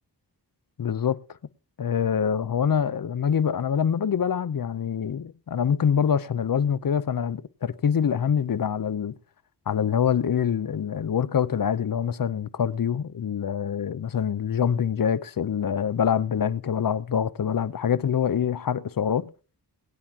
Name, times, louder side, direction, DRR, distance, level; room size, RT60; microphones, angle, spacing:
voice 1, 0.8-1.2 1.8-9.1 9.7-19.2, left 8 dB, 55° left, 0.7 m, -25 dB
22.0 x 9.6 x 2.9 m
cardioid pair, 65°, 41 cm